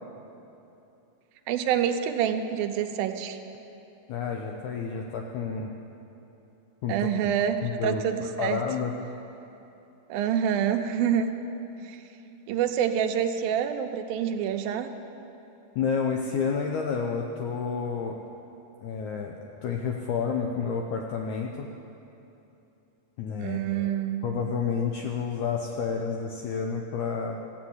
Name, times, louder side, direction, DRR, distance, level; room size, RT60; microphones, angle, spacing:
voice 1, 1.5-3.4 6.9-8.6 10.1-11.4 11.8-12.0 12.5-14.9 23.4-24.2, right 9 dB, 85° right, 7 dB, 2.4 m, -27 dB
voice 2, 4.1-5.7 6.8-7.3 7.6-8.0 8.4-8.9 15.7-18.2 18.8-21.7 23.2-23.9 24.2-27.4, left 6 dB, 80° left, 2 dB, 1.7 m, -30 dB
14.5 x 9.0 x 7.9 m, 2.9 s
omnidirectional pair, 4.2 m